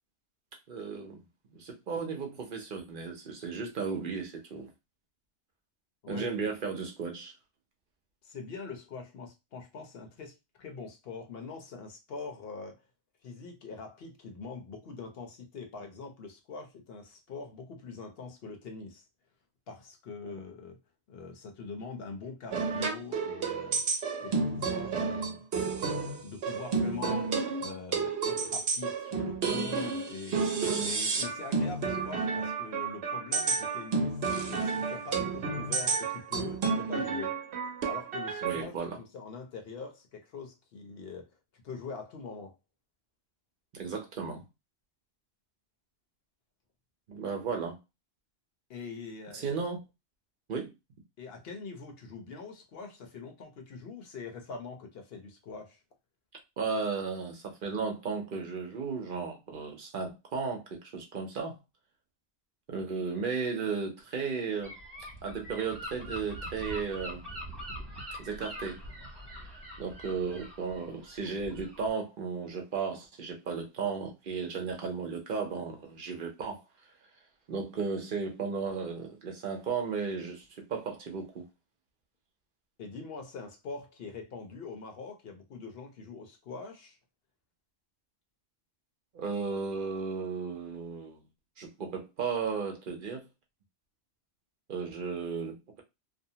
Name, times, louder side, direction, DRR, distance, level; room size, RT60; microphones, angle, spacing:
voice 1, 0.7-1.2 1.5-4.7 6.1-7.3 20.2-20.3 38.4-39.0 43.7-44.4 47.1-47.8 49.3-49.8 50.5-50.7 56.6-61.6 62.7-64.8 65.2-67.2 68.2-68.8 69.8-76.6 77.5-81.4 89.1-91.2 91.6-93.2 94.7-95.8, right 5 dB, 60° right, 0.7 m, -35 dB
voice 2, 8.2-12.8 13.2-19.0 19.7-20.8 21.1-23.8 24.2-25.4 26.2-30.5 30.8-37.3 37.8-41.3 41.6-42.5 48.7-49.5 51.2-55.8 82.8-87.0, left 4 dB, 65° left, 0.9 m, -43 dB
sound 1, 22.5-38.6, right 4 dB, 80° right, 0.9 m, -31 dB
Gull seagull / Wind, 64.6-71.9, equal, 25° right, 0.9 m, -43 dB
2.6 x 2.1 x 2.7 m
omnidirectional pair, 1.1 m